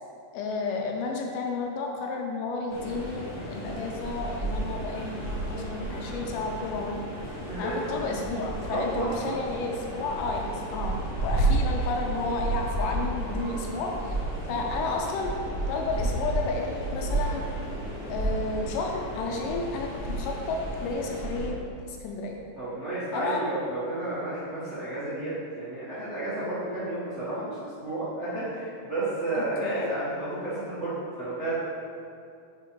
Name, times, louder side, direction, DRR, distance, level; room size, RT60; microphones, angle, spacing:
voice 1, 0.3-7.1 7.6-10.9 11.2-14.1 14.5-15.3 15.7-17.4 18.1-21.6 21.8-22.4 23.1-23.4 29.4-29.9, left 3 dB, 80° left, 1 dB, 2.0 m, -32 dB
sound 1, 2.7-21.5, right 2 dB, 50° left, 1.2 m, -32 dB
voice 2, 8.7-9.4 14.7-14.8 22.6-31.6, right 2 dB, 85° right, -13 dB, 0.6 m, -32 dB
5.2 x 4.6 x 4.5 m, 2.4 s
omnidirectional pair, 4.0 m